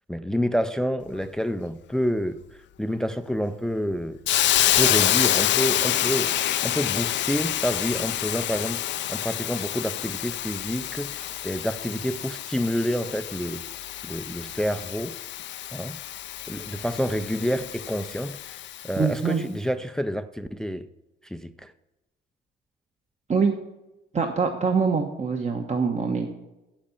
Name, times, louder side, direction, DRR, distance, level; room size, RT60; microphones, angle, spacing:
voice 1, 0.1-2.4 2.8-4.2 4.8-6.4 6.6-8.8 9.1-13.6 14.0-15.2 15.7-16.0 16.5-20.9 21.2-21.7, equal, 5° left, 0.4 m, -28 dB
Hiss, 4.3-19.0, left 13 dB, 65° left, 0.5 m, -27 dB
voice 2, 19.0-19.4 23.3-23.5 24.1-26.3, right 5 dB, 35° right, 1.1 m, -24 dB
8.0 x 7.5 x 7.1 m
cardioid pair, 90°, 20 cm